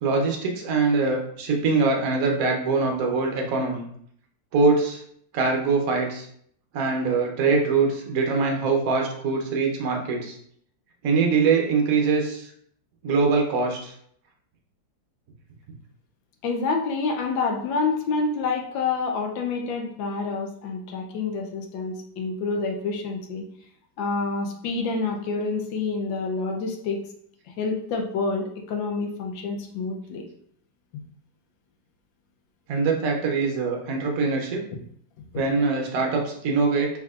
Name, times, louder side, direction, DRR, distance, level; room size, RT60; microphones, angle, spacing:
voice 1, 0.0-3.8 4.5-5.0 5.3-6.2 6.7-10.3 11.0-12.5 13.0-13.9 32.7-34.6 35.3-36.9, right 4 dB, 60° right, 1 dB, 1.1 m, -23 dB
voice 2, 16.4-23.5 24.0-27.0 27.6-30.2, left 4 dB, 80° left, 1 dB, 1.4 m, -28 dB
4.5 x 3.6 x 2.4 m, 0.66 s
omnidirectional pair, 2.0 m